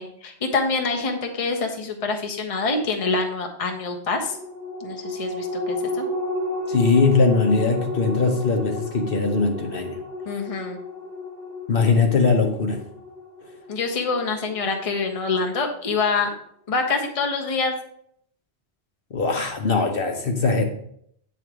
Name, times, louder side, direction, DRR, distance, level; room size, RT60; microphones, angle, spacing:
voice 1, 0.0-4.4 4.8-6.0 10.3-10.8 13.7-16.3 16.7-17.7, left 4 dB, 35° left, 3 dB, 0.9 m, -26 dB
sound 1, 4.2-15.0 15.4-15.5, left 2 dB, 55° right, 1.5 m, -32 dB
voice 2, 6.7-10.0 11.7-12.8 19.1-20.6, left 4 dB, 60° left, 4 dB, 1.1 m, -20 dB
9.0 x 3.4 x 6.0 m, 0.69 s
omnidirectional pair, 1.1 m